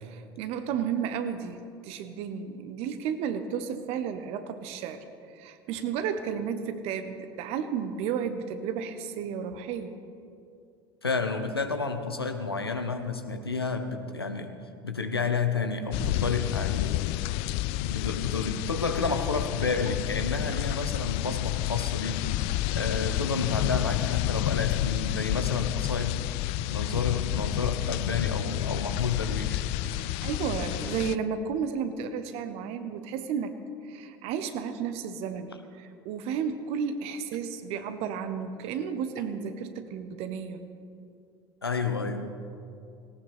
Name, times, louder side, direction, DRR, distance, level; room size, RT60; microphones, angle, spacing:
voice 1, 0.0-5.0 5.3-9.9 20.4-20.5 29.8-40.6, right 7 dB, 55° right, 10 dB, 1.1 m, -33 dB
voice 2, 11.0-14.5 14.8-17.1 17.7-22.4 22.7-26.3 26.7-29.6 41.6-42.3, left 4 dB, 90° left, 7 dB, 0.9 m, -30 dB
sound 1, 15.9-31.1, left 16 dB, 55° left, 0.4 m, -30 dB
18.5 x 18.0 x 3.5 m, 2.5 s
figure-of-eight pair, 65°, 12 cm